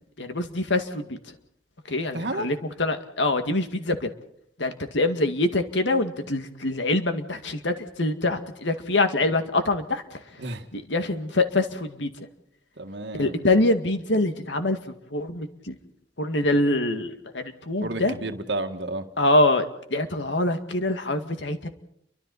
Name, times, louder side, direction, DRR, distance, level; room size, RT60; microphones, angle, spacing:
voice 1, 0.2-1.2 1.9-4.1 4.6-10.0 10.7-12.1 13.1-15.7 16.2-18.2 19.2-19.6 19.9-21.7, left 2 dB, 80° left, 7 dB, 2.1 m, -24 dB
voice 2, 2.1-2.6 10.4-10.7 12.8-13.4 17.8-19.1, right 2 dB, 70° right, 7 dB, 1.8 m, -31 dB
30.0 x 24.0 x 4.2 m, 0.72 s
head